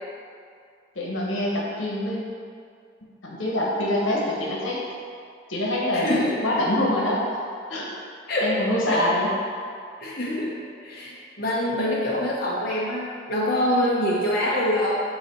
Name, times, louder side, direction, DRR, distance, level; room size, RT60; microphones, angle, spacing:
voice 1, 0.9-2.2 3.2-4.8 5.5-7.2 7.7-7.9 8.4-9.3, left 1 dB, 85° left, -4 dB, 1.2 m, -25 dB
voice 2, 5.9-6.4 8.3-8.5 8.9-9.0 10.0-10.6 10.8-15.0, left 1 dB, 50° left, -6 dB, 1.0 m, -25 dB
8.0 x 3.0 x 4.6 m, 2.3 s
head